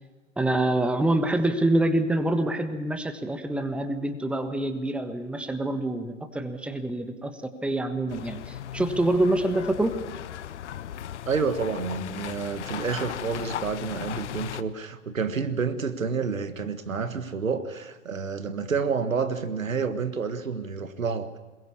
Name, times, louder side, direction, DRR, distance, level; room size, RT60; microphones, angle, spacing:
voice 1, 0.4-10.0, right 1 dB, 5° right, 9 dB, 1.4 m, -26 dB
sound 1, 8.1-14.6, left 11 dB, 60° left, 1.0 m, -37 dB
voice 2, 11.2-21.3, right 5 dB, 80° right, 10 dB, 1.7 m, -29 dB
23.0 x 21.5 x 7.1 m, 1.2 s
figure-of-eight pair, 100°, 39 cm